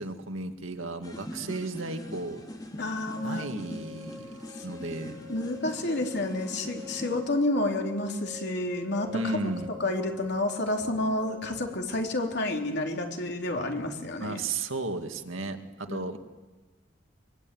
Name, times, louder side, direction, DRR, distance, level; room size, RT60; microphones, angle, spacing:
voice 1, 0.0-2.4 3.2-4.3 4.6-5.2 9.1-9.7 14.2-16.2, right 2 dB, 85° right, 6 dB, 2.1 m, -34 dB
sound 1, 1.0-7.2, equal, 20° left, 2.8 m, -42 dB
voice 2, 2.8-3.5 4.6-4.7 5.3-9.1 9.8-14.4 15.9-16.0, left 2 dB, 60° left, 2 dB, 3.6 m, -30 dB
sound 2, 3.2-11.5, left 4 dB, 20° right, 6.7 m, -45 dB
24.0 x 24.0 x 9.3 m, 1.2 s
head